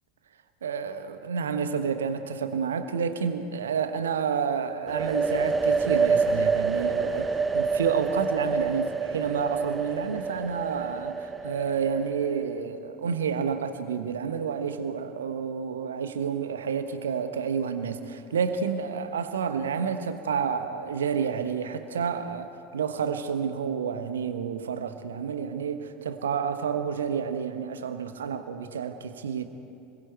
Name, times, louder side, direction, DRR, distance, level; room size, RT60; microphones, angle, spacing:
voice 1, 0.6-29.4, right 6 dB, 70° right, 1.3 m, -30 dB
sound 1, 4.9-12.5, right 5 dB, 20° right, 1.0 m, -27 dB
29.5 x 22.0 x 4.6 m
figure-of-eight pair, 75°, 0 cm